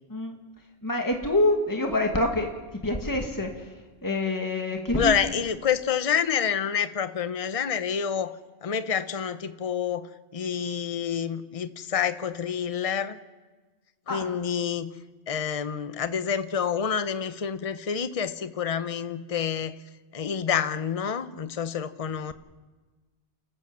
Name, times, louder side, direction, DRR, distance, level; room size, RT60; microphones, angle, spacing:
voice 1, 0.8-2.5 2.8-3.5 4.0-5.2 14.1-14.3, left 2 dB, 15° left, 2 dB, 2.0 m, -26 dB
voice 2, 4.9-8.4 8.6-10.1 10.3-13.2 14.1-14.9 15.3-19.8 20.1-22.3, left 7 dB, 35° left, 12 dB, 0.8 m, -28 dB
29.5 x 13.5 x 7.5 m, 1.3 s
omnidirectional pair, 1.1 m